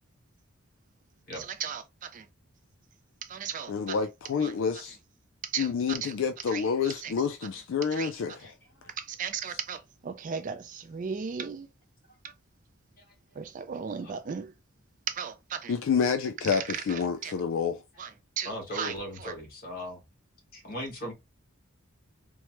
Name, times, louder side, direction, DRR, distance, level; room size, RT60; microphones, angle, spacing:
voice 1, 1.4-2.3 3.2-4.0 4.4-4.5 5.4-6.1 6.5-6.6 7.0-7.1 7.9-8.1 9.0-11.7 12.2-12.3 13.4-14.5 15.1-15.7 16.5-17.3 18.0-18.1 18.4-19.3, right 7 dB, 40° right, 0.3 m, -36 dB
voice 2, 3.7-5.0 5.6-8.5 15.7-17.8, left 6 dB, 60° left, 0.3 m, -28 dB
voice 3, 18.4-20.0 20.5-21.1, equal, 45° left, 1.3 m, -38 dB
3.1 x 2.1 x 2.9 m
head